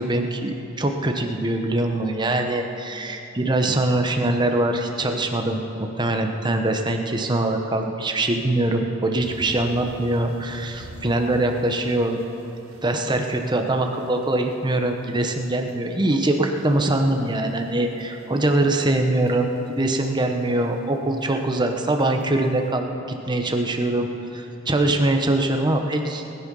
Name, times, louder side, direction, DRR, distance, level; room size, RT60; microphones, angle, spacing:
voice 1, 0.0-12.2 12.8-26.3, right 1 dB, 20° right, 4 dB, 1.0 m, -23 dB
sound 1, 9.2-20.7 21.2-21.4 22.0-22.5, right 1 dB, 90° right, 1.4 m, -46 dB
20.0 x 10.5 x 5.5 m, 2.9 s
head